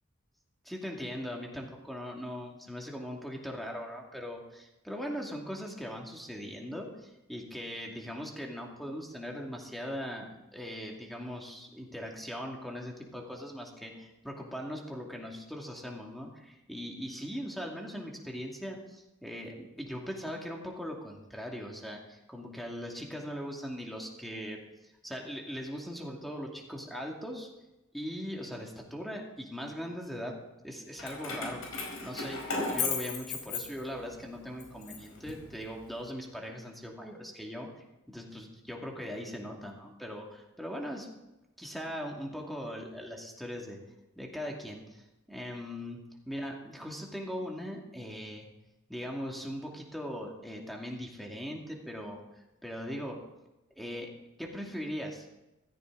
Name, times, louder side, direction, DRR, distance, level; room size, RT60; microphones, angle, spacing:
voice 1, 0.6-27.5 27.9-30.4 30.6-31.6 32.0-41.1 41.6-43.8 44.2-48.5 48.9-52.2 52.6-53.2 53.8-54.1 54.4-55.3, equal, ahead, 0 dB, 2.4 m, -40 dB
Keys jangling, 31.0-34.2 34.6-35.9, left 4 dB, 90° left, 4.9 m, -35 dB
15.5 x 14.5 x 4.0 m, 0.96 s
head